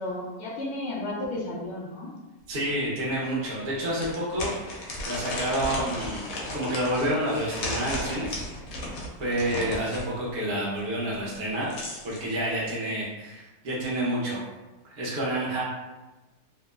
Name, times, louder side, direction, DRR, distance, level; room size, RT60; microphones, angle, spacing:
voice 1, 0.0-2.1 9.5-9.7, left 1 dB, 70° left, -4 dB, 0.6 m, -33 dB
sound 1, 2.5-2.6 3.1-3.2 4.0-10.1 11.3-12.2, left 1 dB, 90° left, 1.2 m, -35 dB
voice 2, 2.5-4.8 5.0-6.2 6.5-8.4 9.2-11.8 12.0-14.4 15.0-15.6, right 1 dB, 50° right, -6 dB, 0.8 m, -29 dB
2.9 x 2.0 x 2.2 m, 1.1 s
omnidirectional pair, 1.7 m